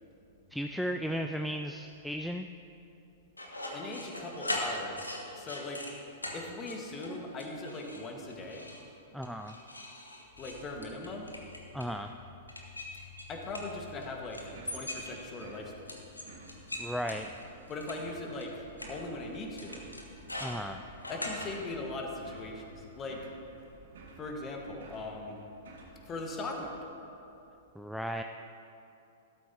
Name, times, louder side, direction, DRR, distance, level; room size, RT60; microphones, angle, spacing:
voice 1, 0.5-2.5 9.1-9.6 11.7-12.1 16.8-17.3 20.4-20.8 27.8-28.2, equal, ahead, 4 dB, 0.3 m, -35 dB
sound 1, 3.4-5.9 6.2-6.4 6.7-7.1 7.4-8.0 8.3-8.8 9.2-11.9 12.5-14.0 14.3-15.4 15.9-18.0 18.4-18.5 18.8-18.9 19.6-21.5, left 1 dB, 90° left, 1.3 m, -40 dB
voice 2, 3.7-5.8 6.3-8.7 10.4-11.3 13.3-15.7 17.7-18.6 18.9-19.8 21.1-23.2 24.2-25.4 26.1-26.9, left 2 dB, 25° left, 1 dB, 1.6 m, -39 dB
sound 2, 10.3-24.0, left 4 dB, 40° left, 2.5 m, -57 dB
sound 3, 14.4-26.3, right 2 dB, 65° right, 1.7 m, -53 dB
13.0 x 12.5 x 2.9 m, 2.9 s
figure-of-eight pair, 105°, 0 cm